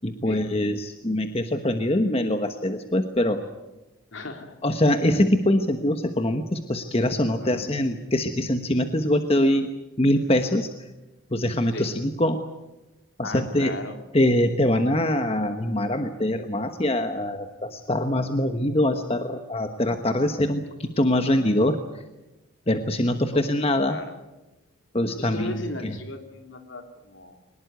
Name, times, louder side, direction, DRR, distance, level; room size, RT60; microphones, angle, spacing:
voice 1, 0.0-3.4 4.6-9.7 10.0-10.7 11.3-12.4 13.2-13.8 14.1-21.8 22.7-24.0 24.9-25.6 25.8-25.9, left 1 dB, 30° left, 7 dB, 1.2 m, -23 dB
voice 2, 4.1-4.6 7.4-7.7 11.7-11.9 13.2-14.0 23.3-23.4 23.9-24.1 25.2-27.4, left 2 dB, 60° left, 6 dB, 3.0 m, -36 dB
23.0 x 20.0 x 9.4 m, 1.0 s
head